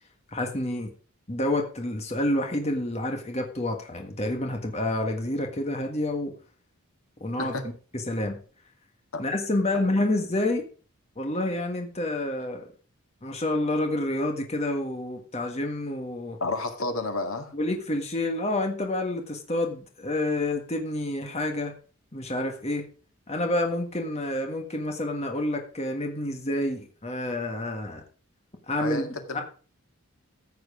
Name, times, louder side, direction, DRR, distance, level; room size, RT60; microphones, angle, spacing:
voice 1, 0.3-0.9 1.3-6.3 7.2-7.5 7.9-8.4 9.2-10.7 11.2-12.7 13.2-16.4 17.5-21.7 22.1-22.8 23.3-28.0 28.7-29.1 29.3-29.4, left 1 dB, 30° left, 1.6 m, -28 dB
voice 2, 16.4-17.5 28.8-29.4, left 2 dB, 75° left, 2.0 m, -31 dB
14.5 x 7.8 x 4.9 m
head